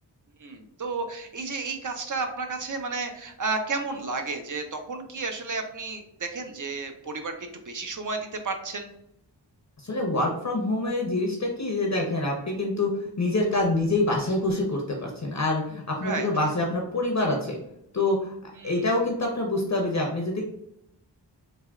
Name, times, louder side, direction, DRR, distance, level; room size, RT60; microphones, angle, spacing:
voice 1, 0.4-7.3 7.7-8.9 16.0-16.5 18.6-18.8, right 3 dB, 45° right, 5 dB, 0.5 m, -32 dB
voice 2, 9.8-17.6 17.9-18.3 18.6-20.4, left 2 dB, 40° left, 0 dB, 0.5 m, -26 dB
3.4 x 2.1 x 2.2 m, 0.77 s
wide cardioid pair, 60°, 43 cm